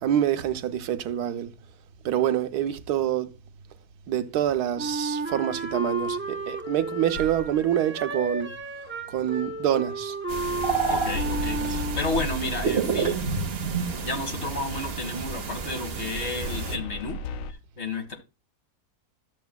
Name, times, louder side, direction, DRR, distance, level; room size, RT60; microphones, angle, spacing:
voice 1, 0.0-1.5 2.0-3.3 4.1-8.5 9.1-10.1, right 10 dB, 85° right, 1.3 m, -26 dB
Wind instrument woodwind instrument, 4.8-12.3, right 3 dB, 15° right, 0.4 m, -32 dB
sound 1, 7.1-7.7 11.0-13.0 16.4-17.5, left 3 dB, 70° left, 1.0 m, -34 dB
sound 2, 10.3-16.8, right 5 dB, 45° right, 1.0 m, -30 dB
voice 2, 10.9-13.2 14.0-17.2 17.8-18.2, left 3 dB, 45° left, 1.9 m, -31 dB
12.5 x 6.9 x 2.2 m
omnidirectional pair, 1.6 m